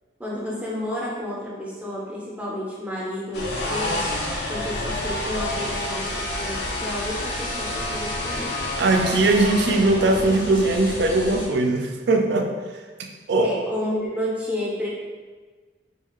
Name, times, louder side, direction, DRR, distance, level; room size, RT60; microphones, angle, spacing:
voice 1, 0.2-4.0 4.5-8.5 13.4-14.9, left 1 dB, 5° right, -6 dB, 0.5 m, -31 dB
sound 1, 3.3-11.5, left 1 dB, 65° left, 0.5 m, -29 dB
voice 2, 8.8-12.5 13.3-13.5, right 2 dB, 65° right, 3 dB, 0.3 m, -20 dB
2.7 x 2.3 x 2.9 m, 1.4 s
head